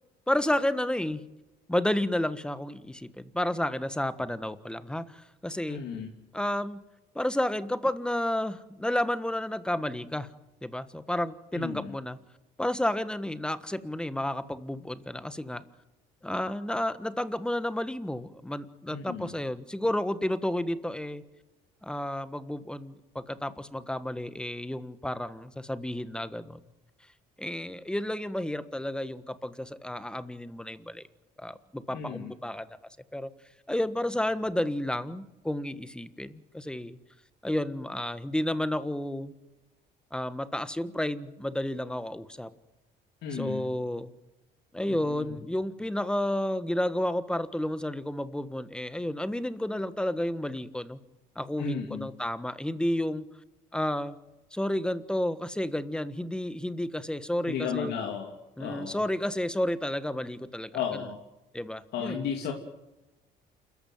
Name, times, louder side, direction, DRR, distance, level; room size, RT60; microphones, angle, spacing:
voice 1, 0.3-1.2 1.7-5.8 6.3-6.8 7.1-10.3 10.6-12.2 12.6-15.6 16.2-21.2 21.8-26.6 27.4-31.0 31.4-32.7 33.1-33.3 33.7-37.0 37.4-39.3 40.1-42.5 43.3-44.1 44.7-51.0 51.3-53.3 53.7-54.1 54.5-57.9 58.6-61.0 61.5-62.2, left 1 dB, 5° left, 13 dB, 1.4 m, -31 dB
voice 2, 5.7-6.1 11.5-12.0 18.9-19.3 31.9-32.3 43.2-43.7 44.9-45.2 51.6-52.1 57.4-58.3 58.6-59.0 60.7-61.2 61.9-62.5, left 7 dB, 75° left, 2 dB, 3.0 m, -34 dB
28.5 x 14.0 x 9.3 m, 1.0 s
cardioid pair, 110°, 17 cm